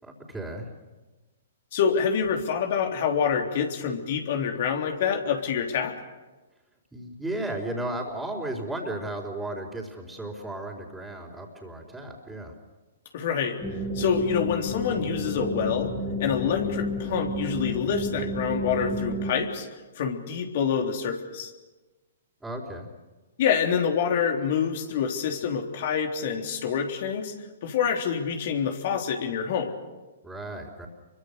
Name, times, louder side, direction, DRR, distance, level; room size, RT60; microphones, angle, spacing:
voice 1, 0.0-0.7 6.9-12.5 22.4-22.9 30.2-30.9, right 1 dB, 5° right, -6 dB, 4.3 m, -34 dB
voice 2, 1.7-6.0 13.1-13.6 13.9-15.9 16.2-19.7 19.9-21.5 23.4-27.3 27.6-29.7, left 7 dB, 55° left, 3 dB, 3.4 m, -26 dB
sound 1, 13.6-19.3, left 1 dB, 10° left, 3.5 m, -31 dB
28.0 x 24.0 x 6.7 m, 1.2 s
figure-of-eight pair, 115°, 0 cm